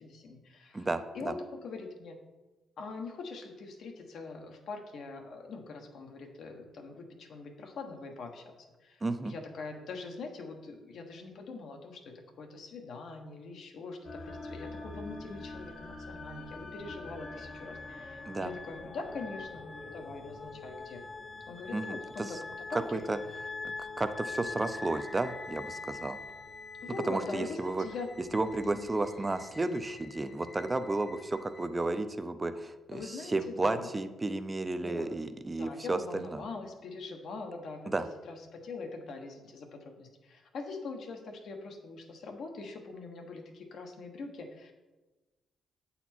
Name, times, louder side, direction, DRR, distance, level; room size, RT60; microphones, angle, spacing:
voice 1, 0.0-2.2 2.8-8.5 8.8-21.0 21.5-22.4 22.7-23.0 26.8-28.1 28.6-28.9 32.9-33.9 34.8-35.1 35.5-38.0 38.2-44.7, left 3 dB, 65° left, 3 dB, 1.1 m, -43 dB
voice 2, 0.7-1.3 9.0-9.3 18.3-18.5 21.7-22.3 22.9-23.2 23.6-26.2 27.1-27.9 28.3-36.4 37.9-38.0, right 2 dB, 20° right, 10 dB, 0.5 m, -33 dB
sound 1, 14.0-31.7, left 3 dB, 45° left, 1.0 m, -44 dB
8.1 x 4.2 x 4.4 m, 1.2 s
cardioid pair, 90°, 0 cm